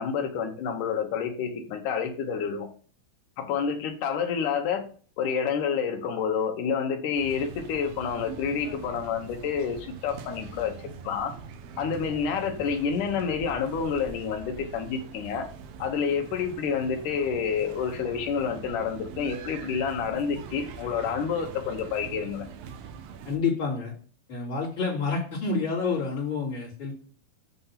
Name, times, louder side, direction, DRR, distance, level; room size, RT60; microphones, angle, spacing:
voice 1, 0.0-2.7 3.4-4.9 5.2-10.7 11.0-11.3 11.8-15.5 15.8-22.5, left 6 dB, 70° left, 5 dB, 2.1 m, -28 dB
sound 1, 7.1-23.4, right 6 dB, 75° right, 2.4 m, -43 dB
voice 2, 23.2-23.9 24.3-26.9, left 4 dB, 35° left, -6 dB, 2.6 m, -28 dB
8.0 x 3.3 x 5.7 m, 0.42 s
omnidirectional pair, 4.4 m